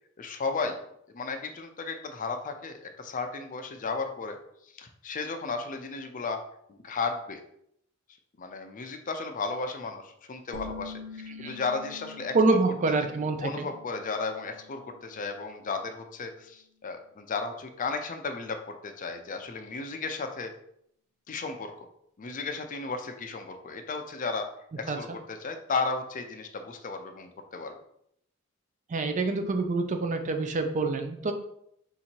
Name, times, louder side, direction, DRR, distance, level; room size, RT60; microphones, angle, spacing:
voice 1, 0.2-0.7 1.1-4.4 4.7-6.4 6.7-7.4 8.4-12.3 13.4-20.5 21.3-21.9 22.2-24.5 24.8-27.7, left 4 dB, 40° left, 6 dB, 0.5 m, -34 dB
sound 1, 10.5-15.9, left 4 dB, 75° right, 0.6 m, -46 dB
voice 2, 12.3-13.7 24.9-25.0 28.9-31.3, right 3 dB, 35° right, 6 dB, 0.4 m, -26 dB
3.7 x 2.9 x 4.4 m, 0.73 s
head